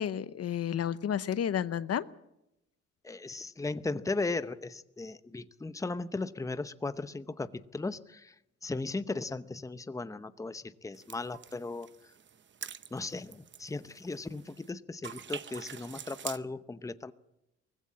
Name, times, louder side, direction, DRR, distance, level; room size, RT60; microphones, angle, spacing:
voice 1, 0.0-2.0, left 9 dB, 55° left, 16 dB, 0.8 m, -31 dB
voice 2, 3.0-12.1 12.9-17.1, left 3 dB, 10° left, 13 dB, 0.8 m, -37 dB
sound 1, 10.9-14.7 15.0-16.4, right 8 dB, 40° right, 0.8 m, -46 dB
20.0 x 15.5 x 8.5 m, 0.87 s
cardioid pair, 90°, 30 cm